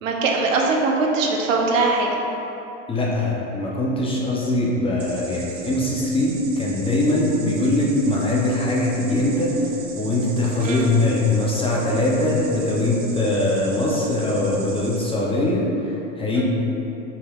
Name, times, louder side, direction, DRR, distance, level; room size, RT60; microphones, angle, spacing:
voice 1, 0.0-2.2 10.6-11.0 16.3-16.4, right 3 dB, 85° right, 0 dB, 0.7 m, -21 dB
voice 2, 2.9-16.4, left 2 dB, 15° left, -4 dB, 0.6 m, -22 dB
sound 1, 5.0-15.1, right 4 dB, 35° right, 0.6 m, -40 dB
5.5 x 3.2 x 2.3 m, 3.0 s
hypercardioid pair, 105°, 38 cm